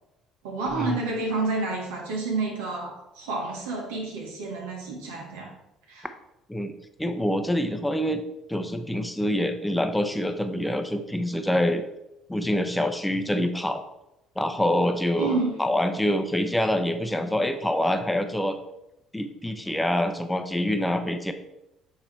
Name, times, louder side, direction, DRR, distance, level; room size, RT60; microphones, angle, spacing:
voice 1, 0.4-5.5 5.9-6.1 15.2-15.6, right 3 dB, 90° right, 0 dB, 1.6 m, -29 dB
voice 2, 7.0-8.2 8.5-11.8 12.3-13.8 14.4-18.6 19.1-21.3, left 1 dB, 10° left, 7 dB, 0.7 m, -26 dB
8.4 x 3.3 x 4.3 m, 0.90 s
supercardioid pair, 70°, 0 cm